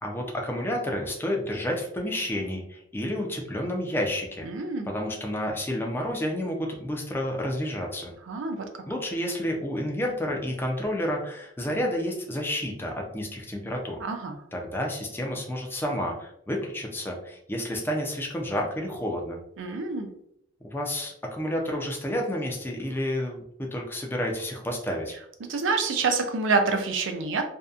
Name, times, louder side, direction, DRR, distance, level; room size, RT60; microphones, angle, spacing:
voice 1, 0.0-4.5 4.9-8.1 8.9-14.0 14.5-19.4 20.6-25.2, left 1 dB, 10° left, 0 dB, 0.4 m, -30 dB
voice 2, 4.4-4.9 8.3-8.7 14.0-14.4 19.6-20.1 25.4-27.4, right 4 dB, 75° right, 6 dB, 0.4 m, -27 dB
2.6 x 2.2 x 2.4 m, 0.72 s
head